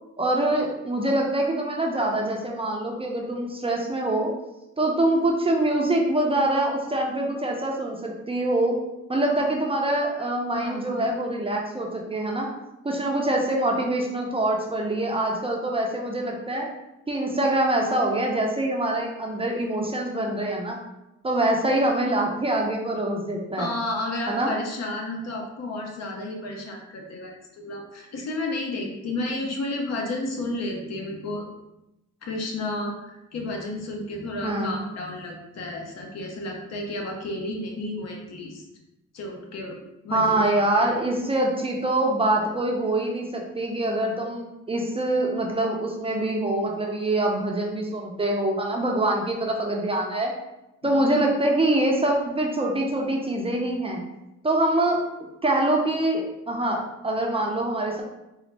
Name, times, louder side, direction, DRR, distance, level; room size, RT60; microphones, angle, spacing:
voice 1, 0.2-4.3 4.8-8.8 9.1-12.5 12.8-16.7 17.1-20.8 21.2-23.7 24.3-24.5 34.4-34.8 40.1-50.3 50.8-54.0 54.4-55.0 55.4-58.0, right 1 dB, 20° right, 0 dB, 0.5 m, -24 dB
voice 2, 10.5-11.1 23.6-31.5 32.2-38.6 39.1-40.6 50.8-51.1, left 2 dB, 60° left, 1 dB, 0.8 m, -32 dB
4.0 x 2.0 x 3.2 m, 0.94 s
cardioid pair, 90°, 30 cm